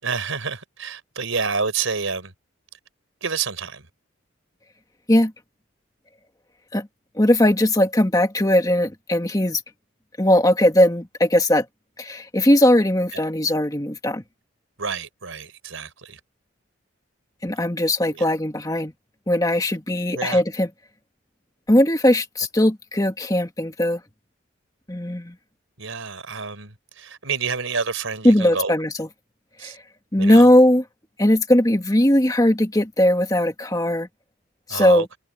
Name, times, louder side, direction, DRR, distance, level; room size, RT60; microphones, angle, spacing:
voice 1, 0.0-2.3 3.2-3.9 13.1-13.2 14.8-16.2 18.1-18.3 20.1-20.4 25.8-28.7 29.6-29.8 30.2-30.5 34.7-35.1, right 5 dB, 85° right, 4.4 m, -28 dB
voice 2, 7.2-9.6 10.2-11.7 12.0-14.2 17.4-18.9 19.3-20.7 21.7-24.0 24.9-25.4 28.2-29.1 29.6-29.8 30.1-30.8 31.2-34.1 34.7-35.1, left 1 dB, 20° left, 1.7 m, -19 dB
head